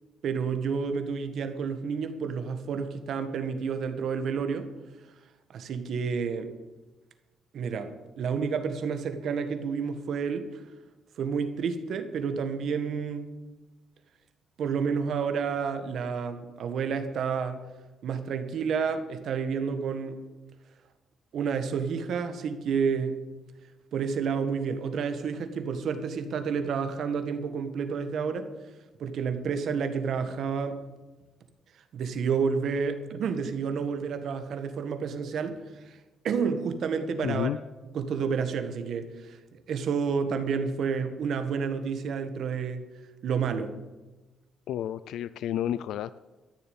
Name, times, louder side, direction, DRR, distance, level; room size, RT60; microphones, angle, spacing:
voice 1, 0.2-4.7 5.5-6.5 7.5-10.6 11.2-13.4 14.6-17.6 18.0-20.2 21.3-23.2 23.9-28.5 29.0-30.8 31.9-35.6 35.8-36.0 36.2-37.5 37.9-42.8 43.2-43.8, right 6 dB, 60° right, 8 dB, 1.6 m, -30 dB
voice 2, 37.2-37.6 44.7-46.2, left 11 dB, 80° left, 15 dB, 0.4 m, -31 dB
13.5 x 7.0 x 9.6 m, 1.2 s
cardioid pair, 145°, 0 cm